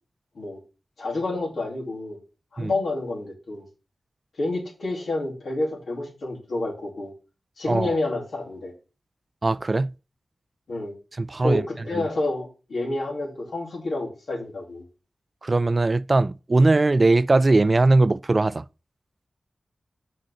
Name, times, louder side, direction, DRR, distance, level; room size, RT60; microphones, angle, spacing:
voice 1, 1.0-2.2 2.5-3.6 4.4-7.1 7.6-8.7 10.7-10.9 11.4-14.9, left 2 dB, 80° left, 2.8 m, -29 dB
voice 2, 9.4-9.9 11.2-11.6 15.4-18.6, right 2 dB, 45° right, 0.3 m, -20 dB
6.4 x 3.9 x 6.3 m
cardioid pair, 40°, 0 cm